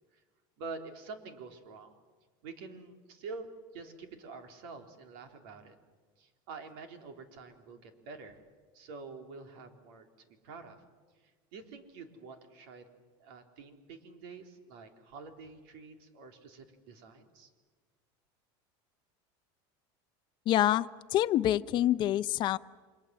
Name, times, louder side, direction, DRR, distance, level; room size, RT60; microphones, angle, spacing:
voice 1, 0.6-2.0 2.4-5.7 6.2-8.4 8.7-10.8 11.5-12.9 13.2-17.5, right 4 dB, 75° right, 5 dB, 3.9 m, -47 dB
voice 2, 20.5-20.9 21.1-22.6, left 12 dB, 40° left, 12 dB, 0.8 m, -26 dB
29.5 x 25.5 x 7.8 m, 1.4 s
supercardioid pair, 150°, 12 cm